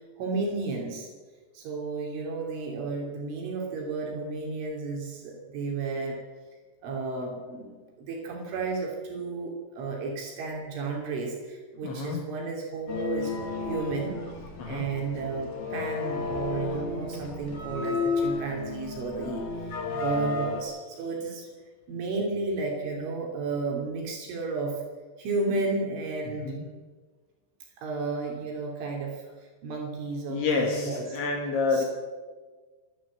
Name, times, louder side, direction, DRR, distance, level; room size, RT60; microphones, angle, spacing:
voice 1, 0.2-1.1 1.6-6.2 6.8-14.2 14.7-21.5 21.9-24.8 25.2-26.6 27.8-31.2 31.7-31.9, right 3 dB, 75° right, -1 dB, 5.4 m, -33 dB
voice 2, 11.8-12.2 14.6-14.9 26.3-26.7 30.3-31.8, left 4 dB, 70° left, 1 dB, 4.5 m, -28 dB
sound 1, 12.9-20.6, left 4 dB, 55° left, 4.5 m, -32 dB
29.0 x 12.0 x 7.5 m, 1.4 s
omnidirectional pair, 5.6 m